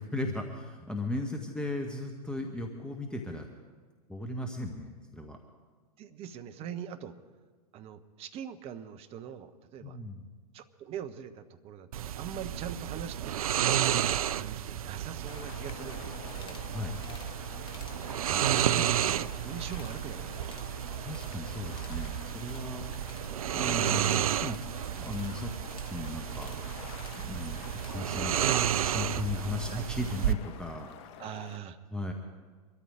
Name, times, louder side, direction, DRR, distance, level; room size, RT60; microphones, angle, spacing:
voice 1, 0.0-3.5 4.1-5.4 9.8-10.2 16.7-17.0 21.0-22.9 23.5-25.5 25.9-26.5 27.2-31.1 31.9-32.1, left 2 dB, 5° left, 2 dB, 1.2 m, -36 dB
voice 2, 6.0-7.1 7.7-10.0 10.5-13.5 14.3-16.6 18.3-20.7 29.7-29.9 31.2-31.8, right 8 dB, 30° right, 9 dB, 1.0 m, -42 dB
sound 1, 11.9-30.3, right 11 dB, 65° right, 0.5 m, -32 dB
sound 2, 15.3-31.6, left 10 dB, 45° left, 0.7 m, -48 dB
sound 3, 16.3-16.7 17.0-17.3 17.6-18.0 18.3-19.3 19.6-20.0 20.3-21.4 21.6-28.0, left 4 dB, 25° left, 1.8 m, -55 dB
24.5 x 13.0 x 3.7 m, 1.5 s
figure-of-eight pair, 95°, 20 cm